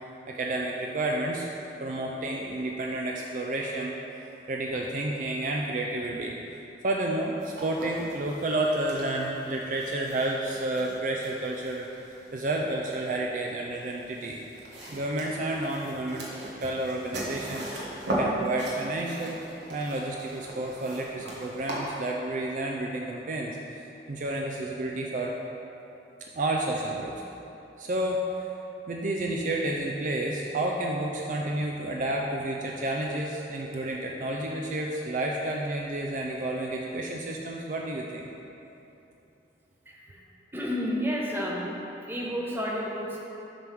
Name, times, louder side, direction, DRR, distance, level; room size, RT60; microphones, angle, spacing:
voice 1, 0.3-1.5 1.8-3.9 4.5-6.3 6.8-11.9 12.3-14.4 14.9-17.7 18.2-19.4 19.7-23.6 24.1-25.3 26.3-27.1 27.8-28.5 28.9-38.3, right 1 dB, 45° right, -1 dB, 0.4 m, -30 dB
sound 1, 7.4-22.0, right 1 dB, 85° right, 1.3 m, -38 dB
voice 2, 39.9-40.3 40.5-41.7 42.0-43.2, equal, 10° right, -3 dB, 0.8 m, -31 dB
7.5 x 3.5 x 6.1 m, 2.9 s
head